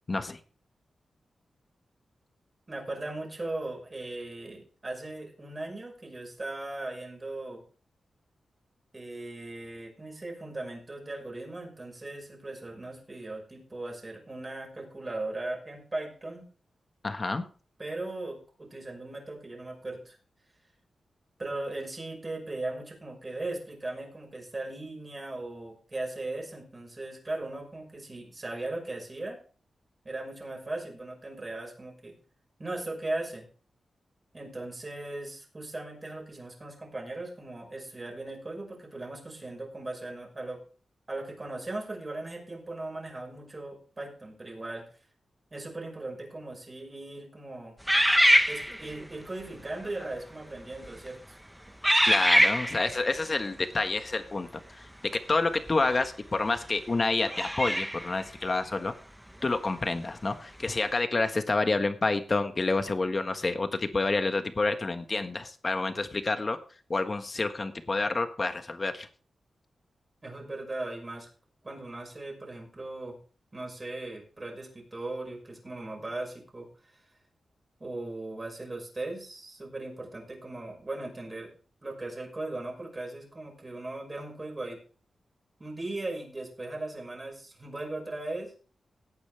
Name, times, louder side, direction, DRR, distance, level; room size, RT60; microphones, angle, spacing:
voice 1, 0.1-0.4 17.0-17.4 52.1-54.9 55.3-58.9 59.4-66.6 66.9-69.1, left 3 dB, 35° left, 8 dB, 1.4 m, -28 dB
voice 2, 2.7-7.6 8.9-16.4 17.8-20.2 21.4-29.4 30.0-32.1 32.6-33.4 34.3-40.6 41.1-44.8 45.5-47.8 48.5-51.4 70.2-71.3 71.6-73.2 73.5-77.0 77.8-81.5 81.8-84.8 85.6-88.5, right 2 dB, 30° right, 1 dB, 5.7 m, -38 dB
sound 1, 47.9-49.0 49.8-50.1 50.7-51.1 51.8-53.0 55.7-55.8 57.3-58.1, equal, 5° right, 1.1 m, -23 dB
17.0 x 9.4 x 3.4 m, 0.39 s
wide cardioid pair, 95°, 0 cm